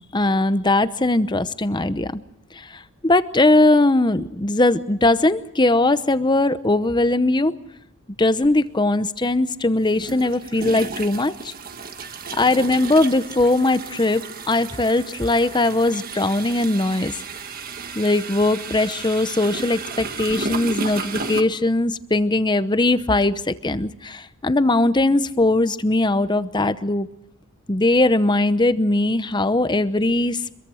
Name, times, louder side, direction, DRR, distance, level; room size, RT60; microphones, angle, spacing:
voice 1, 0.1-2.2 2.5-7.5 8.2-11.5 12.3-17.1 17.9-27.1 27.7-30.6, left 2 dB, 20° left, 13 dB, 0.8 m, -20 dB
sound 1, 8.4-8.5 9.9-21.4, right 4 dB, 40° right, 1.6 m, -33 dB
26.0 x 22.5 x 6.3 m, 0.78 s
head